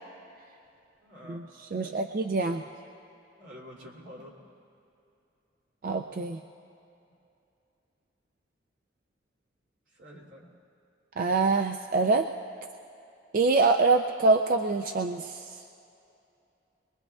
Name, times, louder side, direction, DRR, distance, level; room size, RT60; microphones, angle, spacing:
voice 1, 1.0-2.0 2.5-2.6 3.4-4.4 10.0-10.5, equal, 85° right, -3 dB, 2.9 m, -48 dB
voice 2, 1.7-2.6 5.8-6.4 11.2-12.2 13.3-15.5, right 3 dB, 50° right, 5 dB, 0.4 m, -25 dB
22.5 x 22.5 x 2.3 m, 2.7 s
head